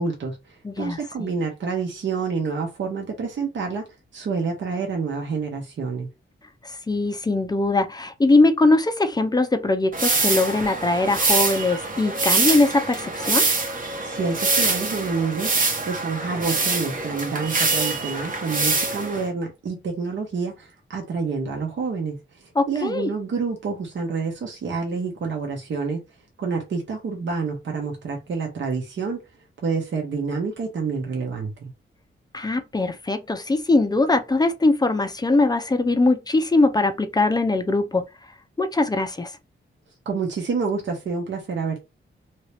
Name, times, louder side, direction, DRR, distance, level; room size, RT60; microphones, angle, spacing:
voice 1, 0.0-3.9 4.1-6.1 14.0-15.5 15.9-22.2 22.7-26.0 26.4-29.2 29.6-31.5 40.1-41.8, right 4 dB, 65° right, 1.0 m, -28 dB
voice 2, 0.6-1.3 6.6-13.5 22.6-23.1 32.3-38.0 38.6-39.3, left 2 dB, 20° left, 0.5 m, -21 dB
sound 1, 9.9-19.3, right 3 dB, 40° right, 1.0 m, -24 dB
2.9 x 2.8 x 3.2 m
wide cardioid pair, 130°, 21 cm